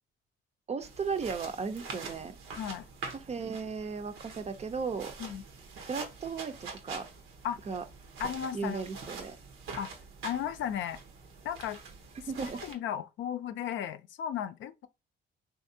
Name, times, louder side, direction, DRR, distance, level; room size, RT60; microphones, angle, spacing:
voice 1, 0.7-2.4 3.1-5.1 5.8-7.1 7.7-7.8 8.5-9.4 12.2-12.6, right 5 dB, 35° right, 0.5 m, -35 dB
sound 1, 0.8-12.7, right 4 dB, 90° right, 0.9 m, -45 dB
voice 2, 8.2-8.8 9.8-9.9 10.2-11.0 11.4-11.8 12.7-14.9, left 9 dB, 70° left, 0.4 m, -35 dB
3.4 x 2.6 x 2.6 m
cardioid pair, 90°, 20 cm